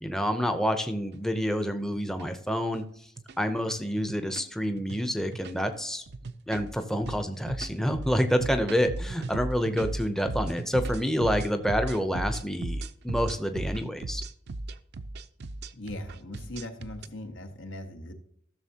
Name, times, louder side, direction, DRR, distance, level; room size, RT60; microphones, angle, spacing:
voice 1, 0.0-2.8 3.4-6.0 6.5-14.2, equal, ahead, 7 dB, 0.6 m, -28 dB
sound 1, 1.0-1.1 1.8-2.2 2.6-2.8 3.2-3.4 4.0-4.5 4.8-5.0 5.3-5.7 6.1-17.1, right 2 dB, 60° right, 0.5 m, -36 dB
voice 2, 15.7-18.1, left 1 dB, 85° left, 5 dB, 1.5 m, -39 dB
14.5 x 6.9 x 2.8 m, 0.69 s
head